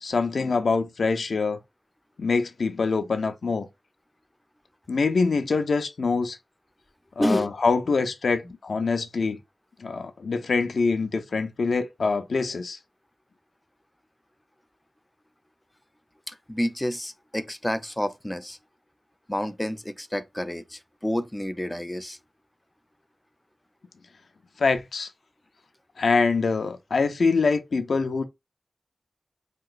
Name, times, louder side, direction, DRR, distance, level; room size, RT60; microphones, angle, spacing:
voice 1, 0.0-1.6 2.2-3.7 4.9-6.4 7.2-9.4 9.8-12.8 24.6-25.1 26.0-28.2, left 4 dB, 80° left, 0.4 m, -24 dB
voice 2, 7.2-7.5 16.3-18.6 19.3-22.2, equal, 10° left, 0.4 m, -29 dB
3.2 x 2.9 x 2.3 m
wide cardioid pair, 60°, 0 cm